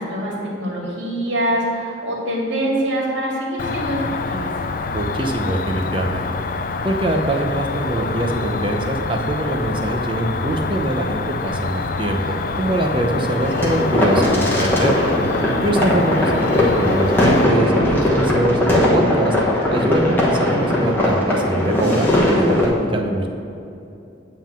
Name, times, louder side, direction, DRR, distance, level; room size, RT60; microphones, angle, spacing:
voice 1, 0.0-4.5 15.7-15.9, right 1 dB, 65° right, -3 dB, 2.1 m, -24 dB
Cricket, 3.6-17.4, left 4 dB, 45° left, 0.4 m, -26 dB
voice 2, 4.9-6.3 6.8-12.2 12.6-15.0 15.6-19.4 19.7-23.3, right 1 dB, 25° right, 2 dB, 0.7 m, -22 dB
sound 1, 13.4-22.6, left 1 dB, 10° left, 1.2 m, -19 dB
9.6 x 3.7 x 7.2 m, 2.7 s
head